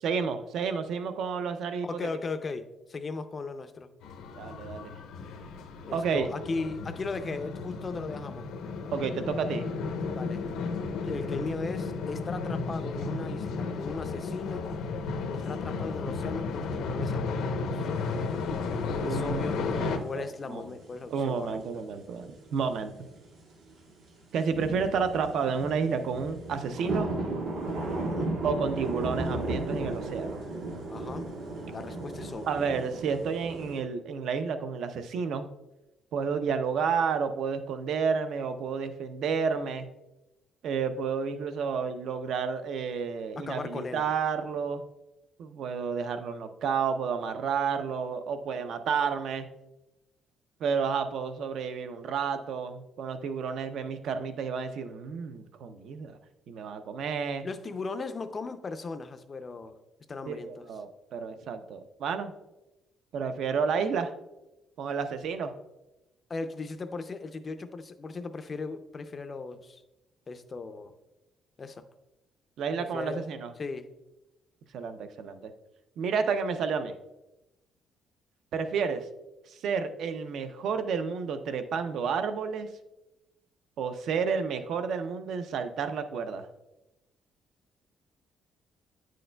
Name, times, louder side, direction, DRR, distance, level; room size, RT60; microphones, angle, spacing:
voice 1, 0.0-2.0 4.3-5.0 5.9-6.3 8.9-9.7 19.0-20.6 21.1-23.0 24.3-27.1 28.4-30.5 32.5-35.5 36.1-39.9 40.6-44.8 45.4-49.5 50.6-56.2 56.5-57.5 60.3-62.3 63.1-64.1 64.8-65.5 72.6-73.5 74.7-75.5 76.0-76.9 78.5-79.0 79.5-82.7 83.8-86.5, right 6 dB, 60° right, 9 dB, 0.5 m, -31 dB
voice 2, 1.8-3.9 5.9-8.4 10.1-10.5 11.0-14.7 15.3-17.9 19.0-19.6 20.0-21.8 28.0-28.4 30.9-31.3 31.7-32.8 43.4-44.0 57.4-59.8 60.1-60.7 66.3-69.8 70.3-70.9 71.6-71.9 72.8-73.3 73.6-73.9, left 4 dB, 25° left, 9 dB, 0.4 m, -37 dB
sound 1, 4.0-20.0, left 4 dB, 85° left, 0.7 m, -33 dB
sound 2, 17.9-21.7 22.1-23.9 24.2-33.8, right 2 dB, 80° right, 1.8 m, -35 dB
9.4 x 6.4 x 2.2 m, 0.97 s
cardioid pair, 165°, 0 cm